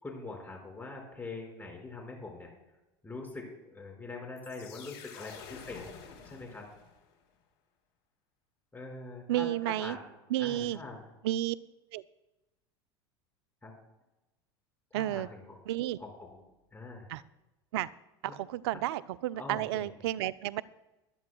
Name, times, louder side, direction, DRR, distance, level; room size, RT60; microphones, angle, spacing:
voice 1, 0.0-2.5 3.0-5.8 6.2-6.6 8.7-10.1 10.4-11.0 13.6-13.7 14.9-15.6 16.0-16.4 16.7-17.1 18.3-18.4 18.7-18.8 19.3-19.9, left 3 dB, 15° left, 0 dB, 5.4 m, -43 dB
sound 1, 4.4-7.2, left 6 dB, 70° left, 3.3 m, -49 dB
voice 2, 9.3-10.0 10.3-10.8 11.2-11.6 11.9-12.0 14.9-15.3 15.7-16.0 17.1-17.2 17.7-17.9 18.4-20.6, right 14 dB, 70° right, 17 dB, 0.5 m, -31 dB
21.0 x 12.0 x 2.3 m, 1.0 s
hypercardioid pair, 85°, 14 cm